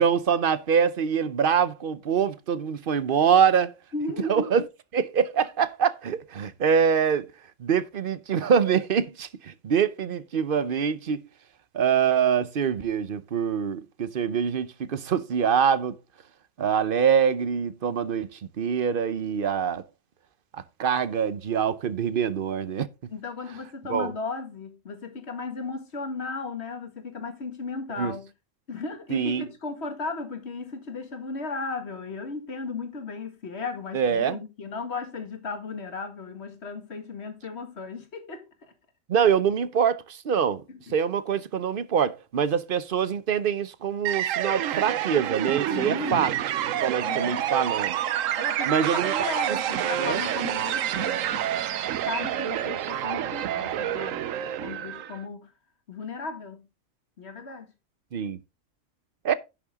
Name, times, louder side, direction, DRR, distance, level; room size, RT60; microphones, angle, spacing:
voice 1, 0.0-3.7 4.3-4.6 4.9-7.3 7.6-11.2 11.7-16.0 16.6-19.8 20.5-22.9 23.9-24.1 28.0-28.1 29.1-29.5 33.9-34.4 39.1-40.6 40.9-46.3 46.8-48.0 48.7-49.3 50.0-50.2 58.1-58.4 59.2-59.3, right 7 dB, 50° right, 0.9 m, -24 dB
voice 2, 3.9-4.5 23.1-28.3 28.7-38.4 40.7-41.0 45.7-46.3 47.0-47.5 48.3-51.5 52.1-54.2 54.6-55.5 55.9-56.7 57.2-57.7, left 3 dB, 55° left, 2.1 m, -35 dB
sound 1, 44.0-55.2, right 11 dB, 85° right, 1.1 m, -28 dB
10.5 x 6.8 x 3.6 m
omnidirectional pair, 1.3 m